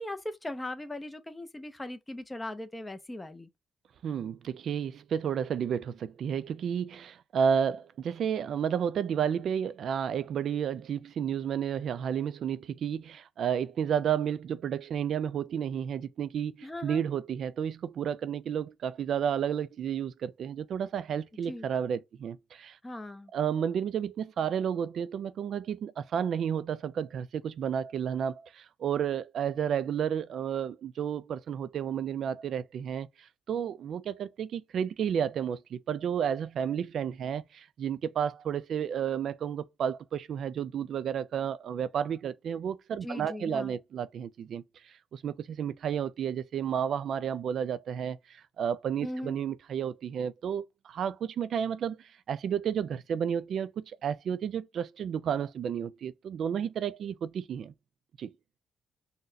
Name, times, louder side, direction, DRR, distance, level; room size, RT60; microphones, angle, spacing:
voice 1, 0.0-3.5 16.6-17.0 21.4-21.7 22.8-23.3 43.0-43.8 49.0-49.4, left 1 dB, 15° left, 0.5 m, -39 dB
voice 2, 4.0-22.8 23.3-57.7 58.2-58.3, right 8 dB, 60° right, 0.3 m, -32 dB
3.8 x 2.1 x 2.6 m
cardioid pair, 125°, 0 cm